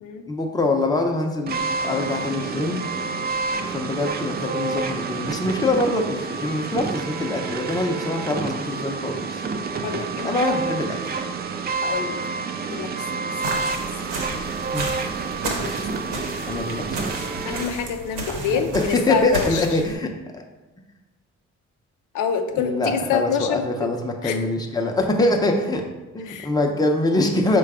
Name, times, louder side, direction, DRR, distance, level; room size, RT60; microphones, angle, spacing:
voice 1, 0.3-2.8 3.7-9.4 10.2-11.2 14.7-14.9 16.5-17.0 18.3-20.4 22.6-25.8 26.1-27.6, left 2 dB, 15° left, 2 dB, 0.6 m, -24 dB
sound 1, 1.5-17.6, right 4 dB, 35° right, 0.4 m, -29 dB
voice 2, 3.5-4.0 9.8-10.6 11.8-12.2 12.7-12.9 13.5-13.7 15.4-16.2 17.1-19.8 22.1-23.6 24.2-24.4 26.3-26.5, left 7 dB, 85° left, 6 dB, 0.5 m, -27 dB
sound 2, 13.4-19.9, right 2 dB, 90° right, 0.9 m, -33 dB
4.5 x 2.3 x 4.8 m, 1.1 s
cardioid pair, 90°, 30 cm